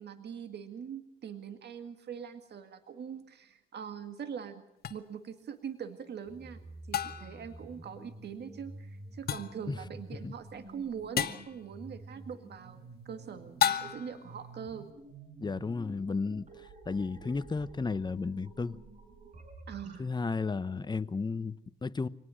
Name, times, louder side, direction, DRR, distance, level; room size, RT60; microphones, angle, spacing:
voice 1, 0.0-4.6 4.9-6.6 6.9-14.9 19.7-20.1, right 7 dB, 55° right, 1.9 m, -43 dB
sound 1, 4.8-5.0 6.9-7.4 9.3-9.6 11.2-11.5 13.6-14.2, left 9 dB, 50° left, 1.3 m, -31 dB
sound 2, 6.3-20.0, right 2 dB, 40° right, 5.4 m, -50 dB
voice 2, 15.4-18.8 20.0-22.1, left 4 dB, 20° left, 0.9 m, -33 dB
25.5 x 19.0 x 6.4 m
cardioid pair, 90°, 20 cm